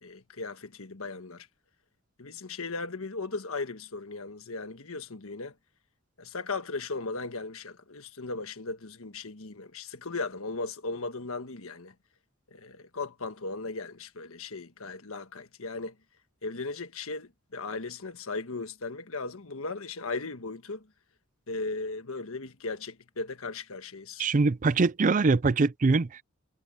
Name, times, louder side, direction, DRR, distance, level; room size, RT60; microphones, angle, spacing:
voice 1, 0.0-1.5 2.2-5.5 6.2-11.9 12.5-15.9 16.4-20.9 21.5-24.2, left 3 dB, 80° left, 1.5 m, -37 dB
voice 2, 24.2-26.2, right 3 dB, 40° right, 0.5 m, -23 dB
head